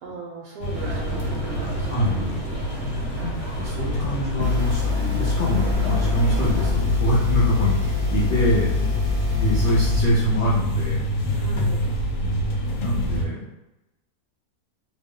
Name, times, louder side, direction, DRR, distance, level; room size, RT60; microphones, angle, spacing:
voice 1, 0.0-2.2 8.4-9.2 11.3-11.9, right 3 dB, 75° right, -2 dB, 1.1 m, -39 dB
sound 1, 0.6-13.3, equal, 75° left, 1.1 m, -26 dB
sound 2, 0.7-6.7, right 2 dB, 55° right, 0.7 m, -35 dB
voice 2, 1.9-2.4 3.2-8.7 9.4-11.0 12.2-12.5 12.8-13.4, equal, 50° left, -9 dB, 0.6 m, -25 dB
sound 3, 4.4-10.0, left 7 dB, 35° right, 1.0 m, -25 dB
2.9 x 2.1 x 3.7 m, 0.95 s
omnidirectional pair, 1.7 m